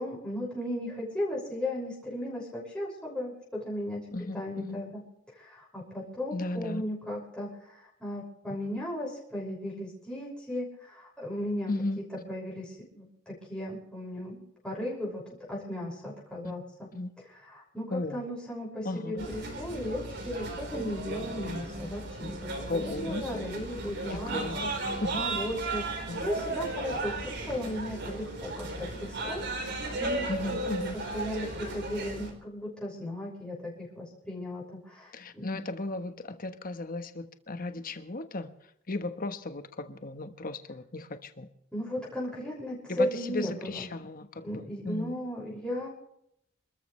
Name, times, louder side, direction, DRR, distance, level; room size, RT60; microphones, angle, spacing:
voice 1, 0.0-4.1 4.3-5.0 5.3-11.7 12.3-16.9 17.5-24.7 25.1-30.6 30.9-35.5 41.7-43.9 44.4-45.9, left 1 dB, 5° left, -5 dB, 6.3 m, -36 dB
voice 2, 4.1-4.9 6.3-6.8 11.7-12.0 16.9-17.1 17.9-18.3 18.8-19.3 22.7-23.2 24.3-24.6 24.9-25.2 26.1-26.3 30.3-31.0 35.1-38.5 38.9-41.5 42.9-45.1, left 2 dB, 45° left, 9 dB, 1.3 m, -35 dB
sound 1, 19.2-32.3, right 2 dB, 60° right, 4.6 m, -35 dB
28.0 x 13.5 x 3.3 m, 0.76 s
head